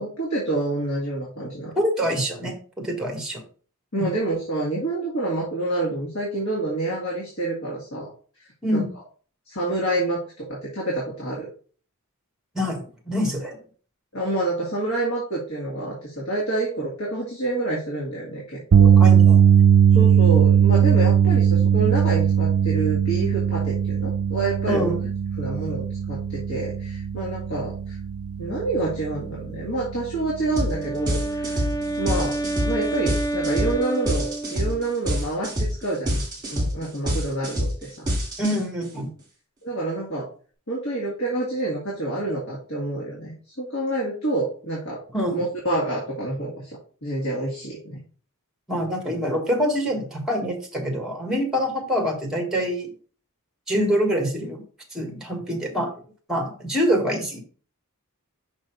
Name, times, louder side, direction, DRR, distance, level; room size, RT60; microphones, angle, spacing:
voice 1, 0.0-1.7 3.9-8.1 8.7-8.8 9.5-11.5 14.1-18.9 19.9-25.0 25.4-28.0 28.4-31.6 32.0-36.2 36.5-38.1 39.6-40.3 40.7-45.0 45.3-48.0, right 2 dB, 65° left, -5 dB, 2.1 m, -28 dB
voice 2, 1.7-3.4 3.9-4.1 8.6-8.9 12.5-13.6 19.0-19.4 24.6-25.0 38.4-39.1 45.1-45.4 48.7-52.9 53.7-54.6 54.9-55.9 56.3-57.4, equal, 5° right, 3 dB, 1.6 m, -25 dB
sound 1, 18.7-31.0 31.3-31.6 33.8-33.9, right 8 dB, 75° right, 0.4 m, -19 dB
Wind instrument woodwind instrument, 30.4-34.9, right 2 dB, 15° left, 0.3 m, -29 dB
sound 2, 30.6-30.8 31.1-38.8, equal, 20° right, 2.4 m, -26 dB
6.1 x 4.1 x 4.6 m, 0.41 s
head